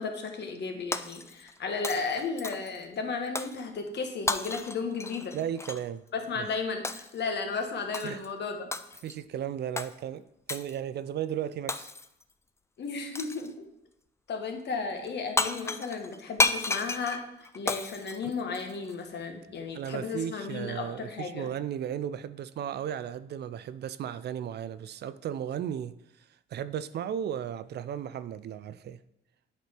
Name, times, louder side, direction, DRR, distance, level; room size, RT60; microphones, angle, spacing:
voice 1, 0.0-5.3 6.1-8.7 12.8-13.6 14.3-17.2 17.5-21.5, left 4 dB, 60° left, 1.3 m, -34 dB
Shatter, 0.9-1.6 1.8-2.8 3.4-3.6 4.3-5.9 6.8-7.2 7.9-8.3 8.7-9.2 9.8-9.9 10.5-10.8 11.7-12.2 13.1-13.5 15.1-15.2 15.4-18.9, left 3 dB, 15° left, 0.4 m, -32 dB
voice 2, 5.3-6.0 6.4-6.5 8.0-8.2 9.0-10.2 10.5-11.9 18.3-18.4 19.7-25.9 26.5-29.0, right 9 dB, 55° right, 0.4 m, -35 dB
8.2 x 4.7 x 4.4 m
cardioid pair, 90°, 20 cm